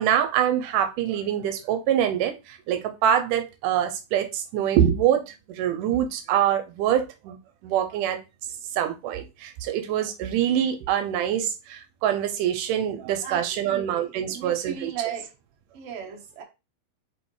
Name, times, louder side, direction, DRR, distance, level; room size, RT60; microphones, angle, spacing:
voice 1, 0.0-7.4 7.6-8.2 8.7-14.9, right 10 dB, 85° right, 2.3 m, -25 dB
voice 2, 13.2-15.3 15.7-16.4, right 7 dB, 55° right, 2.0 m, -36 dB
6.9 x 4.8 x 3.2 m
omnidirectional pair, 3.6 m